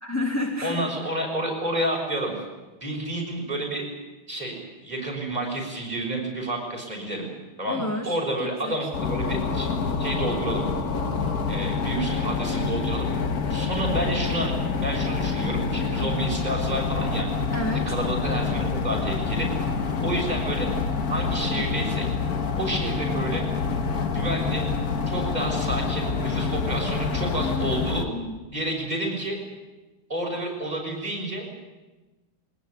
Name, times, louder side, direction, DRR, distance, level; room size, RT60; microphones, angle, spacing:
voice 1, 0.0-0.9 7.6-8.9 15.9-16.1 17.5-17.9 27.4-28.4, left 2 dB, 10° left, 2 dB, 1.7 m, -31 dB
voice 2, 0.6-2.4 2.8-3.9 4.3-7.3 7.6-9.7 10.0-10.6 11.5-13.1 13.5-14.5 14.8-17.3 17.9-19.5 20.0-20.7 21.1-22.1 22.6-23.5 24.1-24.7 25.1-28.1 28.5-29.4 30.1-31.5, right 1 dB, 20° right, -1 dB, 6.6 m, -30 dB
sound 1, 8.9-28.0, left 5 dB, 45° left, 1.8 m, -27 dB
21.5 x 19.5 x 9.7 m, 1.2 s
omnidirectional pair, 2.4 m